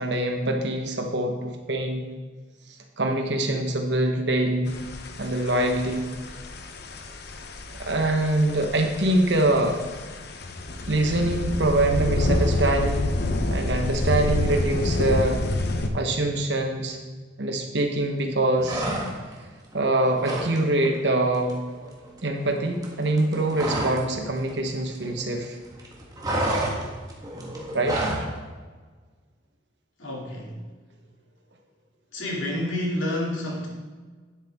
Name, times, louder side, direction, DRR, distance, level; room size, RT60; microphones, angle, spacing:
voice 1, 0.0-2.1 3.0-4.7 5.2-6.1 7.8-9.8 10.9-13.1 13.5-15.4 15.9-17.0 17.4-18.9 19.7-21.6 22.2-25.6 27.7-28.3, right 1 dB, 60° right, 4 dB, 1.2 m, -24 dB
sound 1, 4.7-15.9, left 2 dB, 55° left, 0.8 m, -28 dB
sound 2, 18.6-19.4 19.7-20.6 20.8-21.1 21.3-24.1 24.4-25.5 25.7-28.3, right 1 dB, 20° right, 1.5 m, -30 dB
voice 2, 30.0-30.7 32.1-33.7, left 1 dB, 90° left, -3 dB, 2.7 m, -29 dB
10.0 x 8.1 x 3.6 m, 1.4 s
head